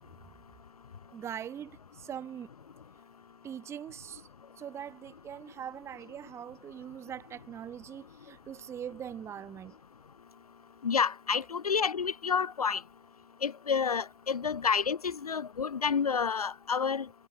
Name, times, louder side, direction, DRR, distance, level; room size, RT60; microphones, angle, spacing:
voice 1, 1.1-2.5 3.4-4.3 4.6-9.8, right 9 dB, 15° right, 4.7 m, -42 dB
voice 2, 10.8-12.8 13.4-17.1, left 6 dB, 65° left, 1.4 m, -29 dB
figure-of-eight pair, 135°, 20 cm